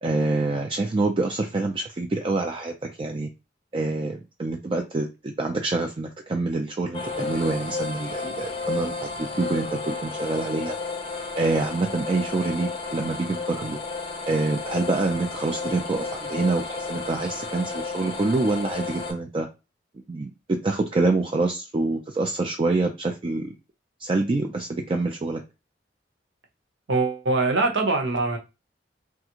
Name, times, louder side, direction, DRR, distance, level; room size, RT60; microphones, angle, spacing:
voice 1, 0.0-3.3 3.7-10.8 11.4-13.8 14.3-19.5 20.1-23.5 24.0-25.4, right 3 dB, 30° right, 3 dB, 0.3 m, -26 dB
sound 1, 6.9-19.1, left 4 dB, 30° left, 0.6 m, -32 dB
voice 2, 26.9-28.4, right 3 dB, 75° right, 3 dB, 0.8 m, -23 dB
3.4 x 2.4 x 2.9 m, 0.27 s
head